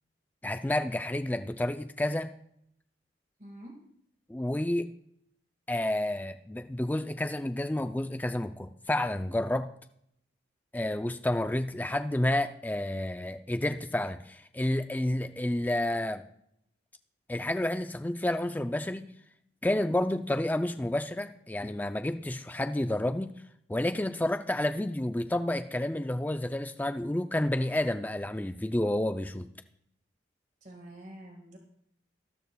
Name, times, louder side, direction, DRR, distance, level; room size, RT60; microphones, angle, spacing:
voice 1, 0.4-2.3 4.3-4.9 5.7-9.7 10.7-16.3 17.3-19.1 19.6-23.4 23.7-29.5, left 1 dB, 10° left, 8 dB, 0.4 m, -30 dB
voice 2, 3.4-3.8 30.6-31.6, right 1 dB, 40° right, 1 dB, 1.8 m, -47 dB
13.5 x 12.5 x 2.3 m, 0.71 s
head